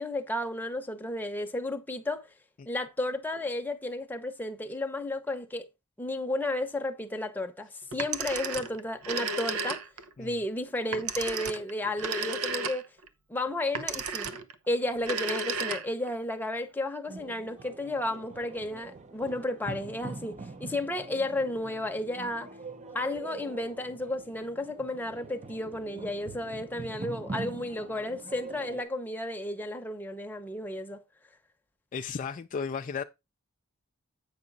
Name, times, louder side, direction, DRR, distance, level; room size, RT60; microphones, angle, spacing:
voice 1, 0.0-2.3 2.6-5.7 6.0-9.8 10.2-12.8 13.3-14.4 14.7-20.3 20.6-22.5 22.9-31.0, left 1 dB, 10° left, 0.9 m, -33 dB
Telephone, 7.9-10.1 10.9-13.1 13.7-14.5 15.0-16.1, right 4 dB, 80° right, 0.9 m, -33 dB
sound 1, 17.1-28.8, right 3 dB, 30° right, 0.7 m, -43 dB
voice 2, 31.9-33.0, left 5 dB, 35° left, 0.3 m, -34 dB
8.7 x 5.9 x 4.0 m
head